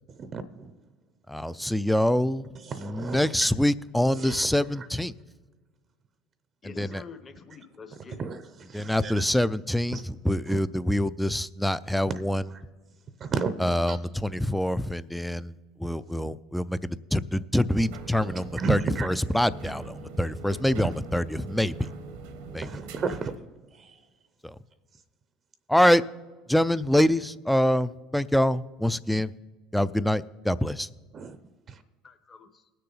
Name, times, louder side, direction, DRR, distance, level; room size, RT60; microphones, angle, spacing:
voice 1, 0.2-0.7 2.6-3.5 4.1-4.5 4.8-4.9 8.2-9.2 9.9-10.0 10.5-10.6 12.5-12.6 13.2-13.5 13.8-14.0 18.2-19.1 20.8-20.9 22.6-23.3 23.7-24.0 31.1-31.4 31.7-31.8, right 5 dB, 40° right, 12 dB, 0.6 m, -33 dB
voice 2, 1.3-2.5 2.8-5.1 6.6-7.0 8.7-10.0 10.2-12.4 13.6-15.5 15.8-21.9 22.5-22.7 24.4-24.6 25.7-26.0 26.5-29.3 29.7-30.9, left 1 dB, 5° left, 16 dB, 0.4 m, -25 dB
voice 3, 6.6-8.2 32.0-32.7, left 5 dB, 30° left, 5 dB, 1.0 m, -46 dB
sound 1, 17.7-23.4, right 4 dB, 80° right, 1.0 m, -42 dB
19.5 x 6.7 x 4.0 m, 1.3 s
supercardioid pair, 90°, 0 cm